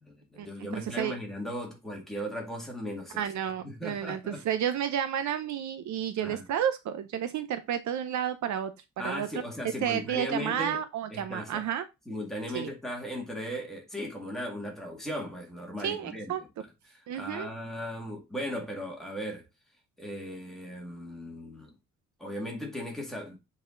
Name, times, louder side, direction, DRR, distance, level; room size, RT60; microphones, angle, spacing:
voice 1, 0.0-3.2 3.6-4.4 6.2-6.5 9.0-10.8 11.1-11.6 12.1-16.3 16.9-19.4 20.0-21.7 22.2-23.4, equal, ahead, 2.0 m, -37 dB
voice 2, 0.7-1.1 3.2-8.7 9.0-9.4 9.8-11.8 12.5-12.7 15.8-16.4 17.1-17.5, right 9 dB, 60° right, 0.7 m, -31 dB
7.5 x 4.2 x 3.8 m
cardioid pair, 180°, 33 cm